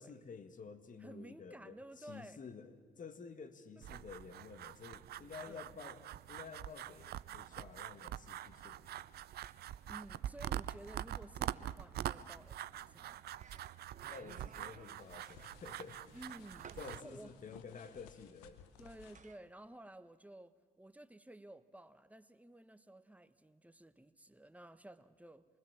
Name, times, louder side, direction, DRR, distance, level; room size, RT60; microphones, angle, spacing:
voice 1, 0.0-9.1 14.1-16.0 16.8-18.6, left 5 dB, 50° left, 9 dB, 2.0 m, -51 dB
voice 2, 1.0-2.4 3.7-3.8 5.4-5.8 9.9-13.2 16.1-17.3 18.8-25.5, right 1 dB, 10° right, 12 dB, 1.2 m, -54 dB
sound 1, 3.8-17.0, right 12 dB, 65° right, 0.6 m, -45 dB
sound 2, 12.9-13.0 13.4-15.1 16.1-17.0 19.1-19.4, right 7 dB, 45° right, 1.2 m, -57 dB
sound 3, 15.0-19.3, left 8 dB, 85° left, 1.0 m, -60 dB
26.0 x 20.0 x 7.4 m, 1.5 s
hypercardioid pair, 50°, 18 cm